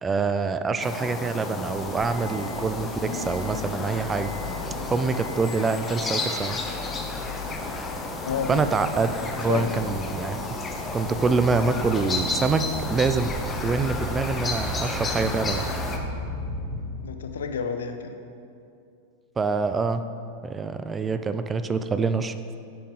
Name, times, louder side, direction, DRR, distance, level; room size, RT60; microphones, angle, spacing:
voice 1, 0.0-4.3 4.9-6.6 8.5-10.4 10.9-12.6 12.9-13.3 13.6-15.6 19.4-20.0 20.4-22.6, right 4 dB, 15° right, 10 dB, 0.3 m, -25 dB
sound 1, 0.8-16.0, left 3 dB, 20° left, 0.8 m, -32 dB
sound 2, 1.7-16.9, left 1 dB, 35° right, 1.9 m, -37 dB
voice 2, 8.2-8.8 9.4-9.8 17.0-18.2, left 6 dB, 65° left, 7 dB, 0.6 m, -30 dB
10.5 x 5.5 x 3.8 m, 2.5 s
figure-of-eight pair, 90°, 0 cm